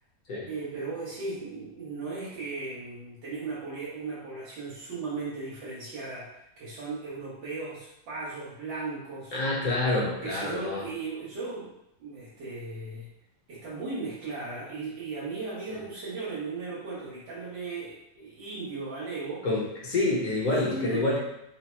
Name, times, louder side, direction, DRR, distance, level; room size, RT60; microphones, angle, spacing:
voice 1, 0.4-9.4 10.2-11.7 12.0-13.1 13.5-19.4 20.5-21.2, right 3 dB, 90° right, -8 dB, 1.7 m, -37 dB
voice 2, 9.3-10.8 15.7-15.8 19.4-21.2, left 2 dB, 55° left, -5 dB, 1.3 m, -27 dB
4.0 x 2.1 x 4.3 m, 0.82 s
omnidirectional pair, 2.0 m